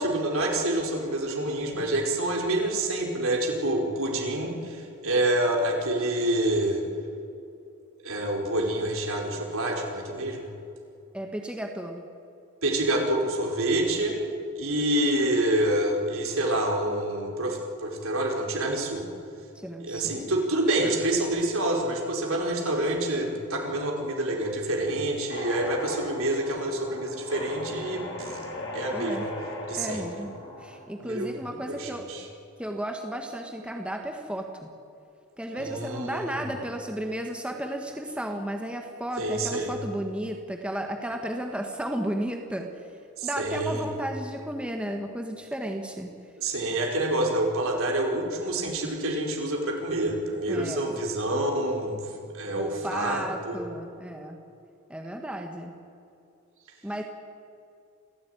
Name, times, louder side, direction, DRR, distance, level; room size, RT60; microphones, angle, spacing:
voice 1, 0.0-6.8 8.0-10.5 12.6-14.1 14.6-19.0 19.8-28.4 28.7-29.3 29.7-30.0 31.0-31.3 31.7-32.2 35.6-36.5 39.2-39.7 43.2-43.9 46.4-53.6, right 1 dB, 65° right, 0 dB, 4.9 m, -27 dB
voice 2, 11.1-12.0 19.5-20.3 28.9-29.3 29.8-30.3 30.6-32.0 32.6-34.5 35.4-42.9 43.2-46.1 50.5-51.0 52.6-54.4 54.9-55.7 56.8-57.0, right 1 dB, 5° right, 3 dB, 1.6 m, -33 dB
sound 1, 25.3-30.9, left 1 dB, 60° left, 5.8 m, -38 dB
28.0 x 16.0 x 9.5 m, 2.6 s
head